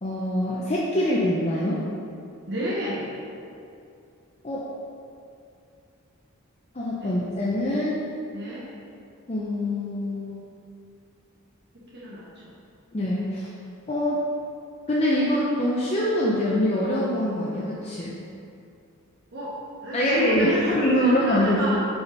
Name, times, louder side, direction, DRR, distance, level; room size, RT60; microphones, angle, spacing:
voice 1, 0.0-1.8 4.4-4.7 6.7-8.0 9.3-10.5 12.9-13.5 13.9-14.2 14.9-18.2 19.9-21.8, left 1 dB, 30° left, -6 dB, 0.6 m, -24 dB
voice 2, 2.5-3.1 7.0-7.2 8.3-8.6 11.9-12.2 19.3-21.8, equal, 50° right, -7 dB, 1.0 m, -31 dB
5.0 x 5.0 x 5.2 m, 2.5 s
head